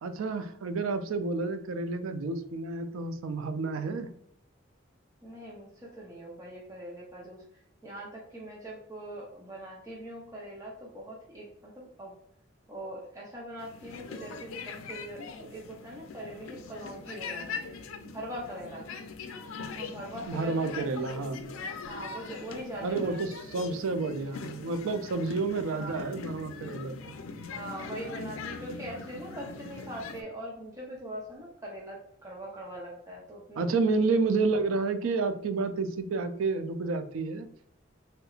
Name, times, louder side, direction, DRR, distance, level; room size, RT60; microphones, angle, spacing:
voice 1, 0.0-4.1 20.3-21.5 22.8-27.1 33.6-37.5, right 3 dB, 80° right, 9 dB, 0.4 m, -30 dB
voice 2, 5.2-7.4 7.8-12.1 12.7-17.6 18.1-18.9 19.7-21.1 21.8-23.2 25.7-26.0 27.5-33.8, right 1 dB, 15° right, -4 dB, 0.6 m, -42 dB
sound 1, 13.6-30.2, left 4 dB, 85° left, 0.4 m, -41 dB
3.3 x 3.0 x 2.3 m, 0.67 s
head